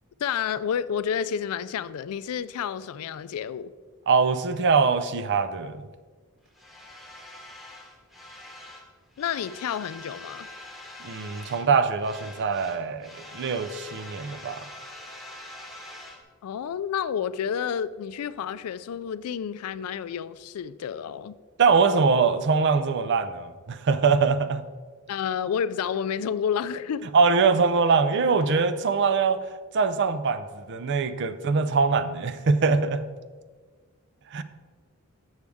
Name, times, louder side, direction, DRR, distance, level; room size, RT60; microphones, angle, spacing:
voice 1, 0.2-3.7 9.2-10.5 16.4-21.3 25.1-27.1, left 8 dB, 80° left, 0.3 m, -30 dB
voice 2, 4.1-5.9 11.0-14.6 21.6-24.6 27.1-29.4 29.7-33.1 34.3-34.4, right 5 dB, 50° right, 0.4 m, -23 dB
sound 1, 6.5-8.9 9.1-11.7 12.0-16.2, left 1 dB, ahead, 1.0 m, -44 dB
8.3 x 6.4 x 3.5 m
head